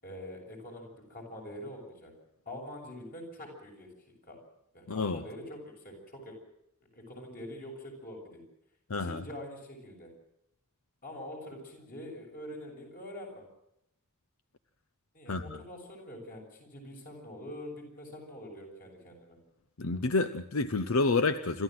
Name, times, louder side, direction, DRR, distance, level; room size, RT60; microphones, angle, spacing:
voice 1, 0.0-2.1 2.5-3.9 4.3-4.4 4.7-6.4 6.9-8.4 9.0-10.1 11.0-13.5 15.1-19.4, left 1 dB, 45° left, 1 dB, 6.9 m, -45 dB
voice 2, 4.9-5.2 8.9-9.2 15.3-15.6 19.8-21.6, left 3 dB, 80° left, 11 dB, 0.9 m, -29 dB
27.5 x 13.5 x 7.8 m, 0.80 s
head